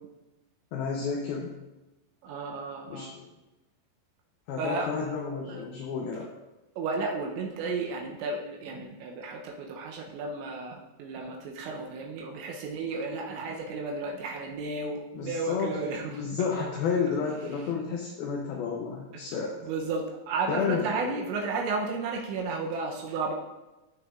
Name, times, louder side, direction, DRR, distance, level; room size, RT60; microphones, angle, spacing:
voice 1, 0.7-1.5 2.9-3.2 4.5-6.3 15.1-15.8 16.1-19.5 20.5-21.2, left 6 dB, 80° left, -1 dB, 2.3 m, -31 dB
voice 2, 2.2-3.1 4.6-5.0 5.5-5.6 6.8-16.5 19.1-19.2 19.6-23.3, right 3 dB, 85° right, 0 dB, 3.2 m, -33 dB
15.0 x 6.1 x 2.5 m, 1.0 s
omnidirectional pair, 5.3 m